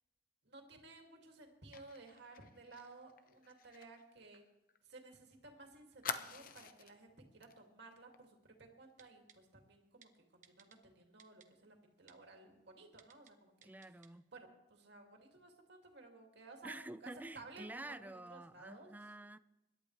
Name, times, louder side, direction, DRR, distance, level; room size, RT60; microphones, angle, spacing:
voice 1, 0.4-4.4 4.8-13.7 14.3-18.9, right 3 dB, 65° right, 2.5 m, -57 dB
Fire, 1.7-5.2 5.4-5.5 6.0-7.0 7.4-7.6 7.9-8.2, left 6 dB, 50° left, 0.9 m, -47 dB
Typing, 9.0-9.4 10.0-10.1 10.4-10.8 11.2-11.5 12.1-12.2 13.0-13.3 13.6-14.1 14.4-14.5, right 8 dB, 45° right, 1.1 m, -62 dB
voice 2, 13.6-14.3 16.6-19.4, right 1 dB, 10° right, 0.4 m, -49 dB
25.5 x 11.5 x 3.3 m
head